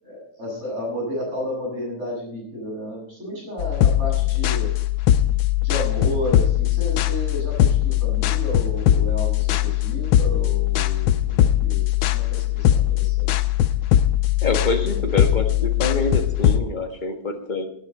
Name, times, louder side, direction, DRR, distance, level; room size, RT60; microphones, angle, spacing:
voice 1, 0.0-4.7 5.6-11.8 12.1-13.3, equal, 35° right, -2 dB, 7.4 m, -32 dB
sound 1, 3.6-16.6, left 12 dB, 80° left, 1.5 m, -20 dB
voice 2, 14.4-17.7, left 2 dB, 25° left, 4 dB, 1.6 m, -26 dB
18.0 x 10.0 x 4.3 m, 0.64 s
omnidirectional pair, 2.2 m